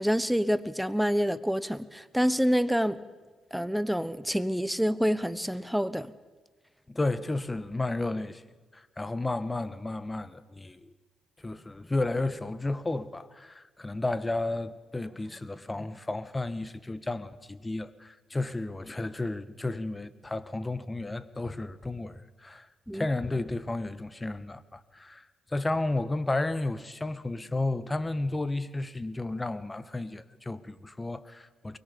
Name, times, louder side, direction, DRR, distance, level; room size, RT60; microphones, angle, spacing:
voice 1, 0.0-3.0 3.5-6.1 22.9-23.1, equal, 5° right, 1.2 m, -27 dB
voice 2, 6.9-8.4 8.7-10.9 11.4-31.8, left 2 dB, 20° left, 1.5 m, -32 dB
24.0 x 21.5 x 7.1 m
supercardioid pair, 55°, 0 cm